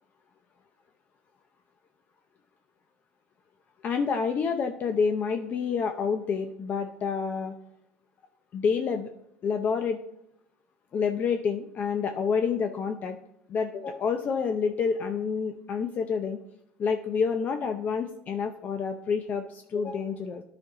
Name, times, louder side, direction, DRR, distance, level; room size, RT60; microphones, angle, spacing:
voice 1, 3.8-7.5 8.5-9.1 9.4-10.0 10.9-13.2 13.5-16.4 16.8-20.4, left 6 dB, 40° left, 6 dB, 0.6 m, -28 dB
10.5 x 5.2 x 3.9 m, 0.79 s
supercardioid pair, 100°, 4 cm